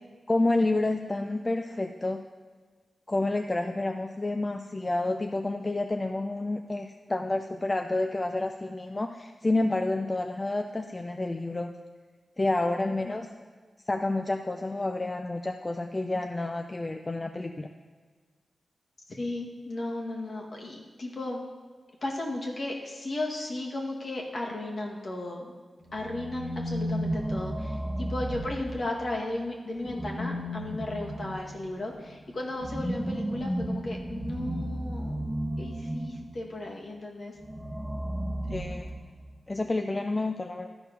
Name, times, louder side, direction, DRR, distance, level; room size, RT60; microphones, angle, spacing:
voice 1, 0.3-2.2 3.1-11.7 12.4-13.3 13.9-17.7 38.5-38.9 39.5-40.7, left 2 dB, 30° left, 5 dB, 0.5 m, -29 dB
voice 2, 19.1-21.4 22.0-25.5 25.9-35.3 35.6-37.4, left 2 dB, 60° left, -1 dB, 1.9 m, -35 dB
sound 1, 25.8-29.1 29.8-36.4 37.4-39.3, equal, 15° right, 1.6 m, -34 dB
12.5 x 4.4 x 5.3 m, 1.5 s
cardioid pair, 40°, 0 cm